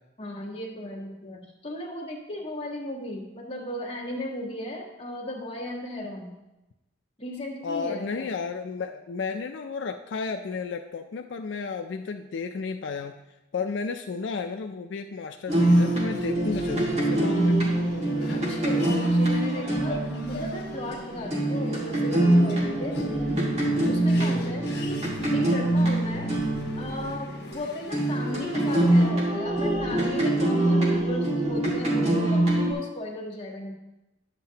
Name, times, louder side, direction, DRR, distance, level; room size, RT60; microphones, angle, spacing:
voice 1, 0.2-6.4 7.2-8.3 18.1-20.0 20.3-23.0 23.8-25.0 25.3-26.3 26.8-33.7, left 1 dB, 30° left, -2 dB, 1.5 m, -36 dB
voice 2, 7.6-13.2 13.5-17.6, left 5 dB, 75° left, 6 dB, 0.4 m, -33 dB
sound 1, 15.5-29.1, left 1 dB, 60° left, 1.1 m, -42 dB
sound 2, 15.5-27.5 27.9-32.7, right 1 dB, 35° right, 1.8 m, -24 dB
10.5 x 7.5 x 2.8 m, 0.99 s
head